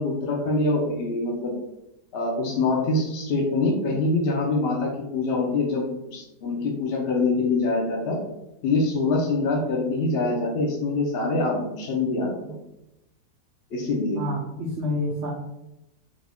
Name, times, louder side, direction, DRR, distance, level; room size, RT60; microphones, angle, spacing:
voice 1, 0.0-1.5 2.1-8.2 8.6-12.6 13.7-14.2, left 3 dB, 70° left, -1 dB, 0.6 m, -24 dB
voice 2, 14.1-15.3, left 1 dB, 80° right, -1 dB, 0.6 m, -28 dB
2.9 x 2.6 x 3.4 m, 0.90 s
omnidirectional pair, 1.8 m